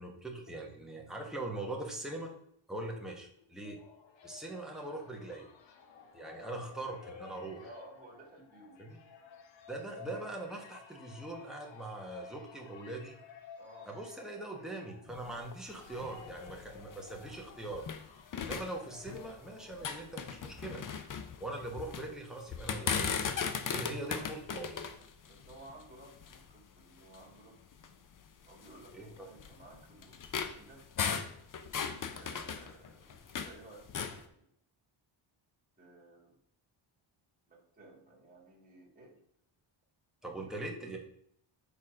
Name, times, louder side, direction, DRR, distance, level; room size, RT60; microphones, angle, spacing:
voice 1, 0.0-2.3 2.7-3.8 4.2-5.5 6.1-7.6 8.8-9.0 9.7-13.2 13.9-17.8 18.4-20.8 21.4-23.3 23.7-24.9 28.9-29.3 40.2-41.0, right 2 dB, ahead, -1 dB, 1.1 m, -42 dB
sound 1, 3.3-20.3, left 6 dB, 65° left, 1.0 m, -55 dB
voice 2, 6.4-6.7 7.6-8.8 13.6-13.9 23.8-24.3 25.3-27.6 28.4-30.2 30.5-30.8 32.1-34.5 35.8-36.4 37.5-39.2 40.4-40.7, right 1 dB, 15° right, -3 dB, 2.2 m, -55 dB
sound 2, 15.1-18.0 18.3-19.4 19.7-22.1 22.5-26.5 27.1-27.2 27.7-27.9 28.6-33.6 33.8-34.2, left 6 dB, 40° left, 0.6 m, -37 dB
6.6 x 4.1 x 4.9 m, 0.72 s
wide cardioid pair, 160°, 49 cm